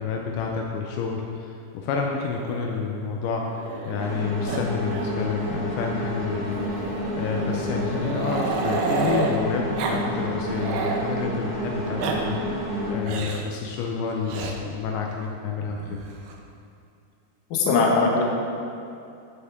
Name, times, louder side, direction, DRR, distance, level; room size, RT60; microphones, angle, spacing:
voice 1, 0.0-12.5 12.9-16.0, left 5 dB, 85° left, 1 dB, 2.2 m, -29 dB
Growling, 2.3-4.2 4.5-4.6 4.9-5.1 5.4-5.5 6.5-9.4 9.8-10.0 10.3-11.0 11.8-12.2 13.0-13.5 14.3-14.6 15.7-16.4, right 5 dB, 85° right, 2.0 m, -31 dB
sound 1, 4.0-12.9, equal, 40° left, 1.4 m, -30 dB
voice 2, 17.5-18.2, left 4 dB, 70° left, -1 dB, 2.2 m, -20 dB
10.5 x 7.8 x 3.6 m, 2.6 s
omnidirectional pair, 5.1 m